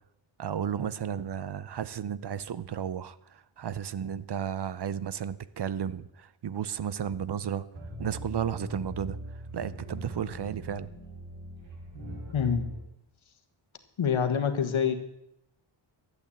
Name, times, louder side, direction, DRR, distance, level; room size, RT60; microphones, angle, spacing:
voice 1, 0.4-7.6 8.0-9.2 9.5-10.9, right 8 dB, 55° right, 17 dB, 0.6 m, -33 dB
sound 1, 7.7-12.8, equal, 75° right, 4.7 m, -40 dB
voice 2, 12.3-12.6 14.0-14.9, left 7 dB, 80° left, 8 dB, 1.6 m, -26 dB
12.5 x 8.3 x 8.5 m, 0.80 s
wide cardioid pair, 170°, 47 cm